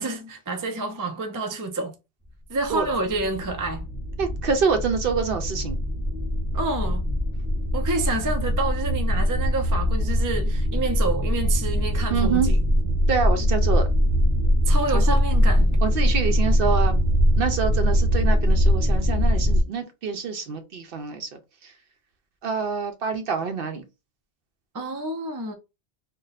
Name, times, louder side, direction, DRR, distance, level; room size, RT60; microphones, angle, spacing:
voice 1, 0.0-1.9 2.5-3.9 6.5-7.1 7.7-12.6 14.7-15.8 24.7-25.5, right 2 dB, 35° right, 0.3 m, -28 dB
sound 1, 2.6-19.6, equal, 15° right, 0.7 m, -22 dB
voice 2, 4.2-5.8 12.1-12.5 13.1-13.9 14.9-15.2 15.8-17.0 17.4-21.3 22.4-23.8, right 5 dB, 60° right, 0.8 m, -26 dB
2.5 x 2.2 x 3.9 m
omnidirectional pair, 1.1 m